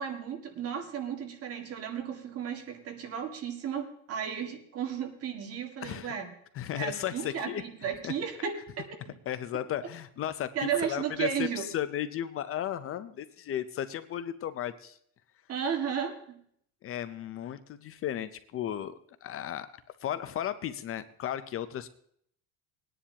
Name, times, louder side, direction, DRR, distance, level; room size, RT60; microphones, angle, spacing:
voice 1, 0.0-6.3 6.8-9.1 10.6-11.7 15.5-16.2, right 8 dB, 40° right, 4 dB, 1.9 m, -34 dB
voice 2, 5.8-6.1 6.5-7.6 8.0-8.1 9.3-15.0 16.8-18.9 19.2-19.7 20.0-21.9, left 11 dB, 40° left, 13 dB, 0.6 m, -35 dB
20.5 x 10.0 x 2.9 m, 0.67 s
cardioid pair, 145°, 35 cm